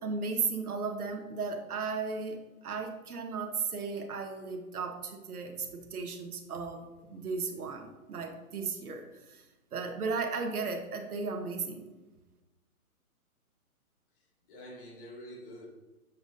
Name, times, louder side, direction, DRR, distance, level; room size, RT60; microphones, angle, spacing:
voice 1, 0.0-9.0 9.3-9.4 9.7-11.9, right 4 dB, 75° right, 4 dB, 1.2 m, -35 dB
voice 2, 14.1-15.7, equal, 35° left, -2 dB, 2.0 m, -47 dB
7.1 x 6.1 x 2.6 m, 1.1 s
hypercardioid pair, 145°, 45 cm